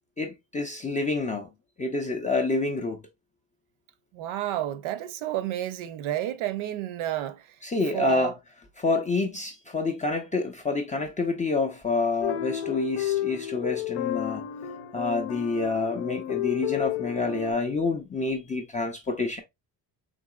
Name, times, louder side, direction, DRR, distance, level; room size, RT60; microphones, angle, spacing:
voice 1, 0.2-1.5 1.8-3.0 7.6-8.3 8.8-14.5 14.9-19.4, left 3 dB, 20° left, 0.3 m, -28 dB
voice 2, 4.1-7.4 7.9-8.3, right 13 dB, 75° right, 0.6 m, -30 dB
sound 1, 12.2-17.5, left 12 dB, 85° left, 0.7 m, -31 dB
3.9 x 2.7 x 2.3 m
cardioid pair, 115°, 49 cm